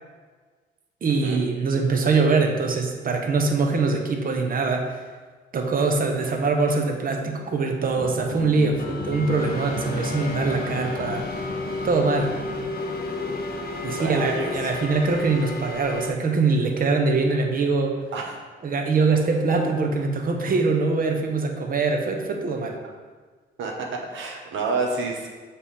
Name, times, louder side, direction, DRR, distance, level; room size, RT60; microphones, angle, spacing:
voice 1, 1.0-4.9 5.5-11.2 11.8-12.3 13.8-18.0 18.6-22.8, right 4 dB, 45° right, 3 dB, 0.9 m, -23 dB
sound 1, 7.9-15.5, left 4 dB, 25° left, 0.4 m, -36 dB
sound 2, 8.8-16.1, left 2 dB, 50° left, 0.9 m, -32 dB
voice 2, 14.0-14.7 18.1-18.4 23.6-25.3, right 3 dB, 75° right, 0 dB, 1.1 m, -29 dB
7.1 x 3.6 x 4.3 m, 1.4 s
cardioid pair, 90°, 20 cm